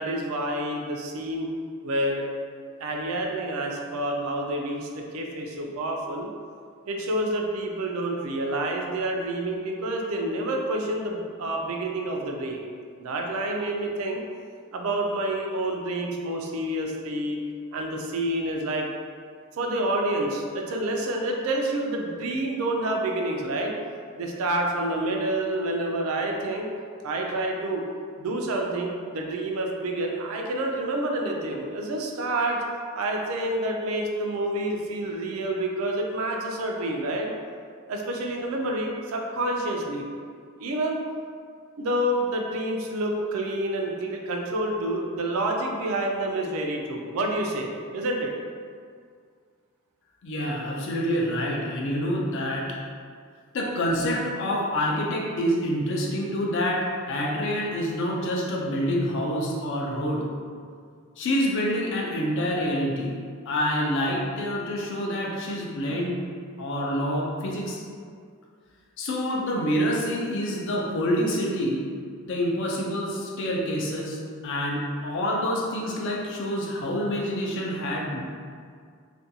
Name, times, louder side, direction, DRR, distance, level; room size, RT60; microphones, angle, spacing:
voice 1, 0.0-1.5 1.8-2.2 2.8-6.3 6.9-12.6 13.0-14.2 14.7-17.4 17.7-18.9 19.5-23.7 24.1-26.7 27.0-27.9 28.2-32.6 32.9-37.3 37.9-40.0 40.6-41.0 41.8-48.3, right 1 dB, 75° right, 1 dB, 0.4 m, -28 dB
voice 2, 50.2-52.8 53.5-60.3 61.2-63.1 63.5-66.2 66.6-67.8 69.0-71.8 72.2-78.2, equal, 60° left, -2 dB, 0.4 m, -27 dB
2.5 x 2.2 x 2.7 m, 2.1 s
head